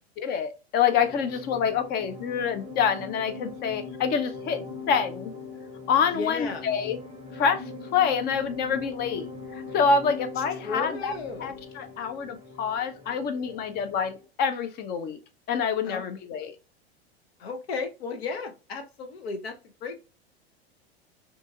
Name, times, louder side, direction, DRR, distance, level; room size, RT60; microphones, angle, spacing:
voice 1, 0.2-5.3 5.9-7.0 7.3-7.6 7.9-11.1 11.4-15.2 15.5-16.5, left 6 dB, 30° left, 8 dB, 0.5 m, -27 dB
sound 1, 0.9-14.3, left 3 dB, 15° right, 0.7 m, -41 dB
voice 2, 6.1-6.6 10.4-11.5 15.8-16.0 17.4-20.0, left 4 dB, 70° left, 6 dB, 0.7 m, -35 dB
2.7 x 2.6 x 2.3 m, 0.30 s
hypercardioid pair, 90°, 32 cm